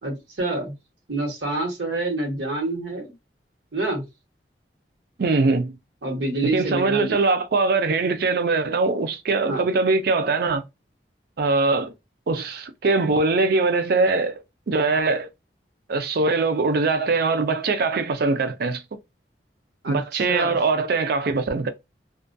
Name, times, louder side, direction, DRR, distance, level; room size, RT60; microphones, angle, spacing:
voice 1, 0.0-0.7 1.1-3.1 3.7-4.0 6.0-7.2 9.5-9.6 19.8-20.6, right 2 dB, 80° right, 1.1 m, -27 dB
voice 2, 5.2-5.8 6.4-10.6 11.4-11.9 12.3-15.3 15.9-18.8 19.9-21.7, right 3 dB, 60° right, 0.4 m, -22 dB
2.4 x 2.2 x 2.5 m
head